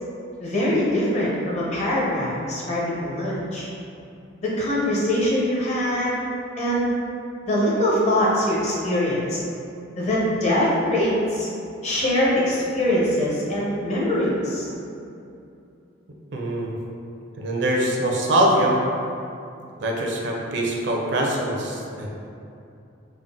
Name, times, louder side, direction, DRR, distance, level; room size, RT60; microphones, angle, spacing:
voice 1, 0.4-3.7 4.4-6.2 6.6-6.9 7.5-9.4 10.0-11.5 11.8-14.7, left 1 dB, 35° left, -6 dB, 0.7 m, -23 dB
voice 2, 16.3-16.8 17.4-18.8 19.8-22.1, right 1 dB, 60° right, -1 dB, 0.5 m, -23 dB
3.6 x 2.1 x 3.6 m, 2.7 s
head